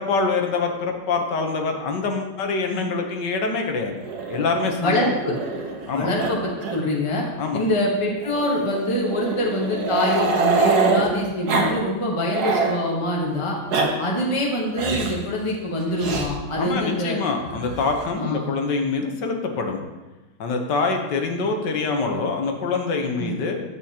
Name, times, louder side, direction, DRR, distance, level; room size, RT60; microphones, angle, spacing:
voice 1, 0.0-3.9 4.3-5.1 5.9-6.1 7.4-7.6 16.6-19.8 20.4-23.6, left 4 dB, 70° left, 4 dB, 1.6 m, -25 dB
Growling, 4.0-5.9 6.2-6.3 6.6-6.8 7.1-7.2 8.2-11.1 11.5-11.7 12.0-12.7 13.5-13.9 14.7-15.2 16.0-16.3 17.4-18.1, right 3 dB, 60° right, 1.6 m, -24 dB
voice 2, 4.8-5.3 5.9-6.4 6.7-7.2 7.5-13.6 14.0-17.2 18.2-18.5 21.3-21.5 23.2-23.3, left 1 dB, 20° left, -2 dB, 1.0 m, -24 dB
10.5 x 8.2 x 2.9 m, 1.1 s
omnidirectional pair, 2.0 m